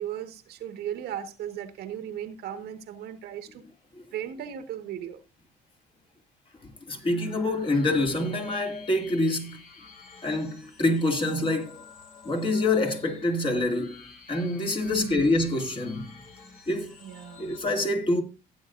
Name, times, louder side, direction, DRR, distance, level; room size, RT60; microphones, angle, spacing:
voice 1, 0.0-3.6 4.1-5.2 14.8-15.2 17.0-17.4, right 10 dB, 75° right, 1.5 m, -36 dB
sound 1, 6.9-17.6, left 5 dB, 55° left, 4.9 m, -50 dB
voice 2, 6.9-9.6 10.2-11.9 12.2-14.0 14.3-16.1 16.7-16.9 17.4-18.2, left 2 dB, 30° left, 2.6 m, -26 dB
15.5 x 8.9 x 2.6 m
cardioid pair, 110°, 17 cm